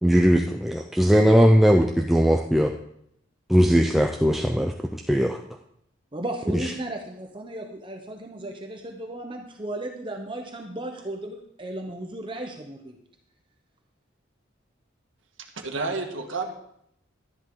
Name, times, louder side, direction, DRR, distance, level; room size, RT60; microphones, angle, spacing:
voice 1, 0.0-2.7 3.5-5.4 6.5-6.7, equal, ahead, 2 dB, 0.5 m, -19 dB
voice 2, 6.1-12.9, right 1 dB, 25° right, 3 dB, 0.9 m, -35 dB
voice 3, 15.4-16.5, right 3 dB, 85° right, 4 dB, 1.6 m, -30 dB
12.5 x 11.0 x 3.8 m, 0.73 s
head